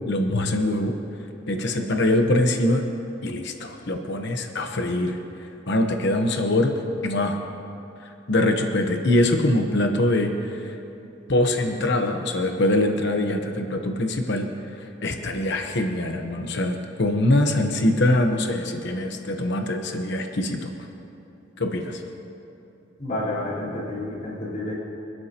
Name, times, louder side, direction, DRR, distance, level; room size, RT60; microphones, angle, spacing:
voice 1, 0.1-0.9 1.5-2.8 3.2-5.2 5.7-7.4 8.3-10.7 11.3-14.5 15.0-20.7 21.6-22.0, left 1 dB, 60° left, 4 dB, 1.0 m, -23 dB
voice 2, 23.0-24.7, left 1 dB, 45° left, -8 dB, 4.3 m, -29 dB
27.0 x 12.5 x 2.9 m, 2.8 s
head